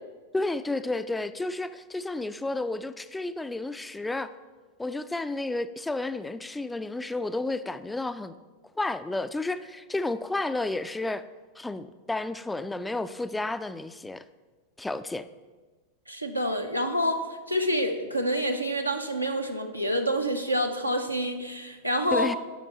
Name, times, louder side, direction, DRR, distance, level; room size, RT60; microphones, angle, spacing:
voice 1, 0.3-4.3 4.8-8.3 8.8-11.2 11.6-14.2 14.8-15.3 22.1-22.4, left 2 dB, 5° left, 12 dB, 0.3 m, -31 dB
voice 2, 16.1-17.2 17.5-22.3, equal, 90° right, 4 dB, 0.7 m, -27 dB
10.0 x 5.8 x 4.2 m, 1.3 s
figure-of-eight pair, 90°, 0 cm